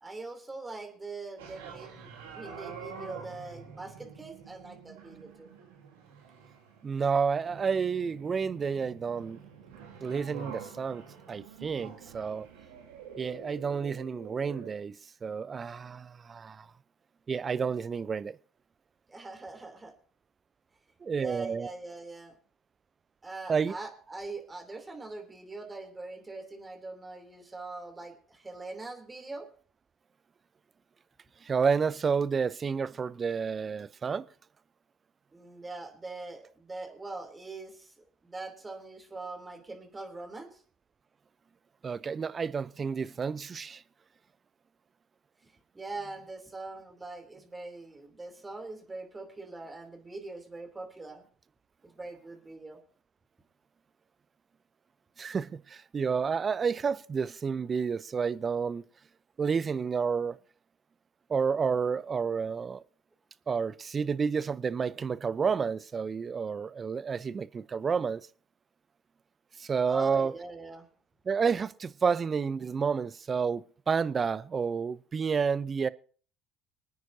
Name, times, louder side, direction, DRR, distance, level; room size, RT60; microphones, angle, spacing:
voice 1, 0.0-5.5 19.1-19.9 21.2-22.3 23.2-29.5 35.3-40.6 45.7-51.2 51.8-52.8 69.9-70.9, right 3 dB, 20° right, 3.1 m, -42 dB
sound 1, 1.4-14.7, right 6 dB, 85° right, 2.3 m, -47 dB
voice 2, 6.8-9.4 10.0-12.5 13.2-16.7 17.3-18.4 21.0-21.7 23.5-23.7 31.4-34.3 41.8-43.8 55.2-58.8 59.4-60.4 61.3-62.8 63.5-68.2 69.6-70.3 71.3-75.9, right 6 dB, 35° right, 0.6 m, -30 dB
25.5 x 9.3 x 2.8 m
hypercardioid pair, 65°, 0 cm